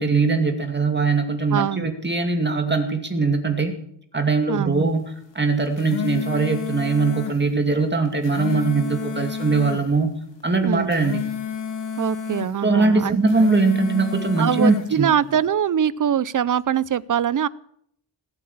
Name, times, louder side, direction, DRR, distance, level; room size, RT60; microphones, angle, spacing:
voice 1, 0.0-3.8 4.1-5.1 5.3-10.1 10.4-11.2 12.6-15.1, right 3 dB, 25° right, 4 dB, 2.4 m, -21 dB
voice 2, 1.5-1.9 4.5-4.9 10.6-10.9 12.0-13.2 14.4-17.5, right 9 dB, 50° right, 19 dB, 0.6 m, -23 dB
sound 1, 5.6-7.4 8.1-9.9 10.7-12.5 13.2-14.9, left 7 dB, 85° left, 2.2 m, -30 dB
18.5 x 8.7 x 7.3 m, 0.69 s
wide cardioid pair, 110°, 42 cm